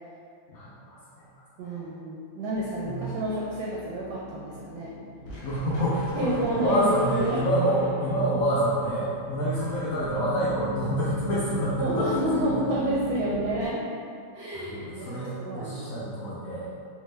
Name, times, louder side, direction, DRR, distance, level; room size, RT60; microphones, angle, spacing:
voice 1, 0.5-1.3 1.6-1.9 2.8-3.1 5.4-12.7 14.5-16.7, equal, 90° left, -8 dB, 0.7 m, -28 dB
voice 2, 1.6-4.9 6.1-7.5 11.8-13.8 14.3-16.1, right 1 dB, 75° right, -6 dB, 1.0 m, -29 dB
sound 1, 2.5-13.7, equal, 60° left, 0.8 m, -40 dB
3.4 x 2.2 x 3.1 m, 2.4 s
omnidirectional pair, 2.1 m